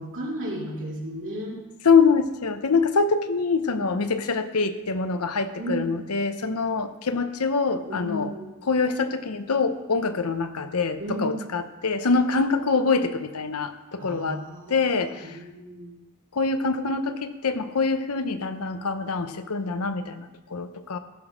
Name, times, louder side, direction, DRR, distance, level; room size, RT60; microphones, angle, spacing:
voice 1, 0.0-1.6 3.8-4.1 5.6-5.9 7.9-8.5 11.0-11.4 14.0-16.0, right 1 dB, 60° right, -2 dB, 2.7 m, -34 dB
voice 2, 1.8-8.3 8.6-14.4 14.7-15.4 16.3-21.0, left 4 dB, 75° left, 9 dB, 0.8 m, -24 dB
15.0 x 6.2 x 6.2 m, 1.1 s
head